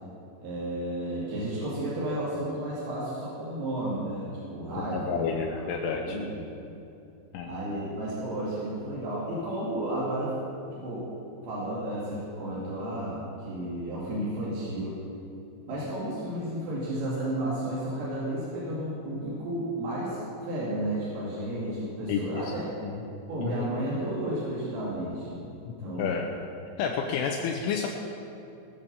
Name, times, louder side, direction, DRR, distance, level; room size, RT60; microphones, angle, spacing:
voice 1, 0.4-5.5 6.0-6.6 7.5-10.4 10.7-11.1 11.4-15.0 15.7-22.7 23.3-25.4 25.8-26.2, right 1 dB, 80° right, -8 dB, 5.2 m, -32 dB
voice 2, 4.9-6.2 7.3-7.5 22.1-22.5 22.8-23.0 23.4-23.7 25.7-26.3 26.8-27.9, left 6 dB, 80° left, 1 dB, 3.3 m, -30 dB
19.5 x 8.3 x 7.1 m, 2.7 s
omnidirectional pair, 5.8 m